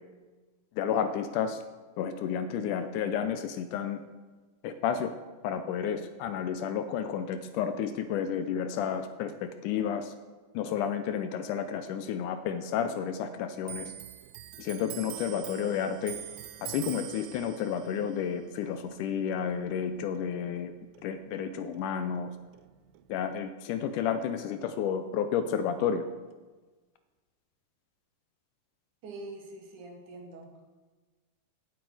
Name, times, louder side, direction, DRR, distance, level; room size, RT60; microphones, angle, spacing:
voice 1, 0.8-1.6 2.0-4.0 4.6-5.1 5.4-10.1 10.5-13.9 14.6-16.2 16.6-20.7 21.0-22.3 23.1-26.1, left 8 dB, 80° left, 9 dB, 2.0 m, -31 dB
Clock, 13.6-20.7 21.0-22.3 22.5-23.4, right 14 dB, 85° right, 2.2 m, -45 dB
voice 2, 29.0-30.5, right 2 dB, 65° right, 1 dB, 3.1 m, -44 dB
16.0 x 8.0 x 4.8 m, 1.3 s
omnidirectional pair, 3.9 m